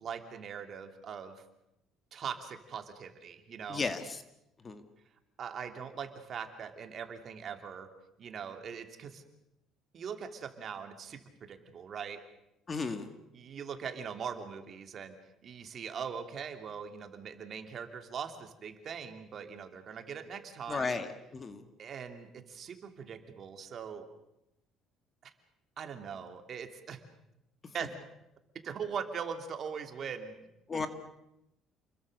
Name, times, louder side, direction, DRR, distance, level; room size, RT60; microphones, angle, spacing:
voice 1, 0.0-1.4 2.1-3.8 5.4-7.9 8.2-9.2 9.9-12.2 13.3-15.1 15.4-21.0 21.8-24.1 25.2-25.3 25.8-27.0 27.7-27.9 28.6-30.3, right 7 dB, 40° right, 6 dB, 2.9 m, -41 dB
voice 2, 3.7-4.2 4.6-4.8 12.7-13.1 20.7-21.6 30.7-30.9, left 4 dB, 25° left, 9 dB, 1.9 m, -34 dB
29.5 x 22.0 x 6.7 m, 0.87 s
cardioid pair, 130°, 0 cm